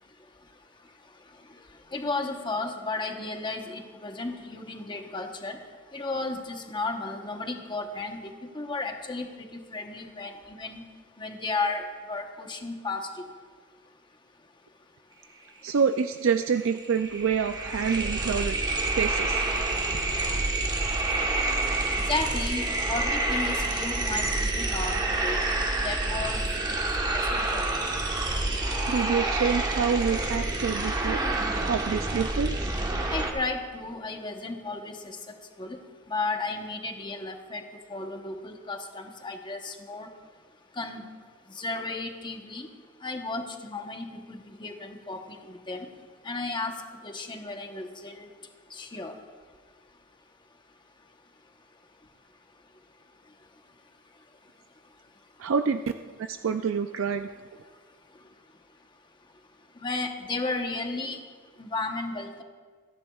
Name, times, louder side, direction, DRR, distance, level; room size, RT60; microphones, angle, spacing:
voice 1, 1.9-5.6 5.9-8.2 8.5-9.3 9.5-10.8 11.2-13.1 22.1-25.4 25.8-26.6 27.1-27.8 33.1-35.2 35.6-35.8 36.1-40.1 40.8-41.0 41.5-42.7 43.0-45.2 45.5-45.9 46.2-46.7 47.0-48.3 48.7-49.1 59.8-61.2 61.6-62.4, left 3 dB, 20° left, 4 dB, 1.0 m, -33 dB
voice 2, 15.6-18.6 19.0-19.5 28.9-31.2 31.6-32.7 55.4-55.8 56.1-57.3, right 6 dB, 65° right, 8 dB, 0.4 m, -27 dB
sound 1, 16.3-16.4 16.6-33.3, right 2 dB, 20° right, 1.1 m, -28 dB
26.5 x 10.5 x 2.4 m, 1.5 s
head